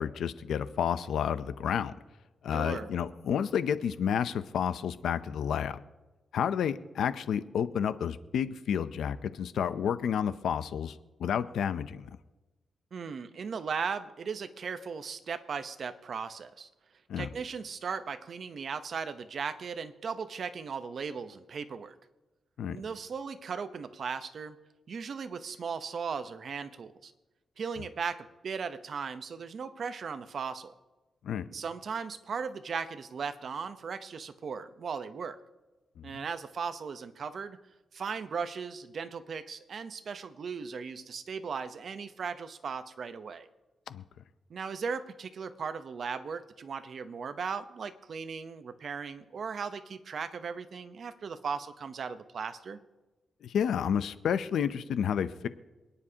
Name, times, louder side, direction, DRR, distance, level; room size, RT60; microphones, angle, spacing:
voice 1, 0.0-1.9 2.4-5.8 6.3-12.2 17.1-17.3 22.6-22.8 31.2-31.5 36.0-36.2 43.9-44.0 53.4-55.5, left 8 dB, 85° left, 13 dB, 0.6 m, -30 dB
voice 2, 2.5-2.9 12.9-16.7 17.2-21.9 22.7-24.6 24.9-27.1 27.6-30.7 31.5-35.4 36.0-37.6 37.9-43.5 44.5-52.8, right 6 dB, 55° right, 10 dB, 0.8 m, -37 dB
27.5 x 9.9 x 2.9 m, 1.2 s
wide cardioid pair, 125°, 0 cm